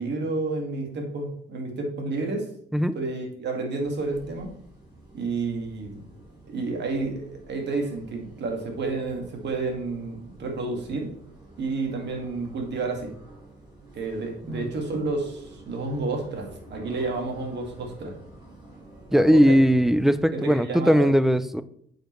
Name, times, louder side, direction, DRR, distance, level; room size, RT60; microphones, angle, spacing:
voice 1, 0.0-2.5 2.9-4.5 5.1-6.0 6.5-11.1 11.6-13.1 13.9-18.1 19.1-19.6 20.3-21.1, right 3 dB, 60° right, 2 dB, 1.9 m, -30 dB
sound 1, 3.8-20.2, right 2 dB, 20° right, 3.0 m, -49 dB
voice 2, 19.1-21.6, equal, ahead, 14 dB, 0.4 m, -19 dB
8.9 x 5.1 x 3.1 m, 0.67 s
cardioid pair, 90°, 20 cm